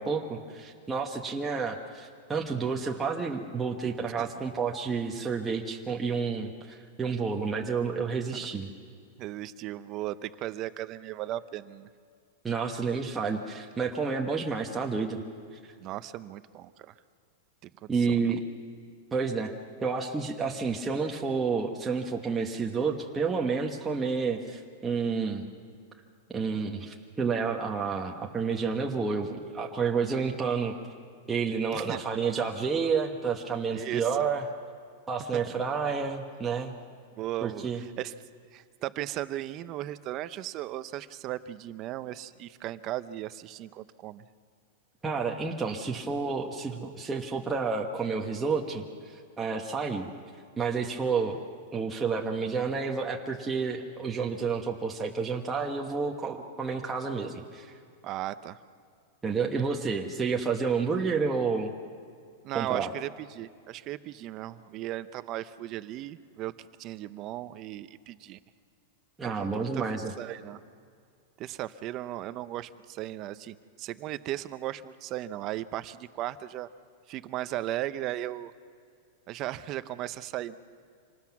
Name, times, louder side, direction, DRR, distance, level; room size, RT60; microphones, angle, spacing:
voice 1, 0.0-8.7 12.4-15.2 15.6-15.7 17.9-18.4 19.1-19.5 19.8-25.5 26.3-30.7 31.3-34.4 35.1-36.7 37.4-37.8 45.0-50.1 50.6-51.4 51.7-57.7 59.2-61.7 62.5-62.9 69.2-70.1, right 5 dB, 10° right, 0 dB, 1.1 m, -30 dB
voice 2, 9.2-11.9 15.8-16.9 17.6-17.7 18.1-18.4 31.7-32.0 33.7-34.1 35.3-35.4 37.2-38.1 38.5-44.2 58.0-58.6 62.4-68.4 69.2-70.6 71.4-76.7 77.1-78.5 79.3-80.5, right 14 dB, 30° right, 13 dB, 0.7 m, -36 dB
26.5 x 19.5 x 6.0 m, 2.3 s
supercardioid pair, 160°, 0 cm